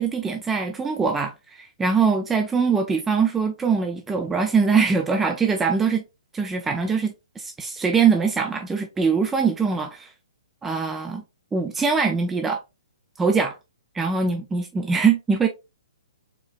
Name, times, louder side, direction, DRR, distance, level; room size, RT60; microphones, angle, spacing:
voice 1, 0.0-6.0 6.3-10.1 10.6-11.2 11.5-12.6 13.2-13.6 13.9-15.5, right 5 dB, 10° right, 0.4 m, -22 dB
4.4 x 3.3 x 2.3 m
figure-of-eight pair, 120°, 3 cm